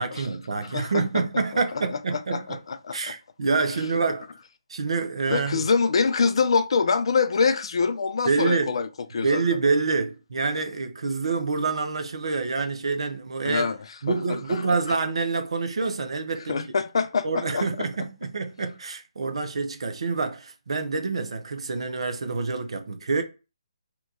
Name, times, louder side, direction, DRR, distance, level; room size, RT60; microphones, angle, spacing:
voice 1, 0.0-2.6 2.9-4.3 4.7-5.7 8.3-8.7 9.2-13.7 14.0-16.6 17.2-23.2, right 4 dB, 65° right, 0.6 m, -27 dB
voice 2, 0.7-1.0 1.5-1.6 1.9-3.1 5.3-9.4 13.4-13.8 14.5-14.6 14.9-15.0 16.5-17.7, left 5 dB, 55° left, 0.4 m, -25 dB
2.9 x 2.3 x 3.7 m
figure-of-eight pair, 145°, 3 cm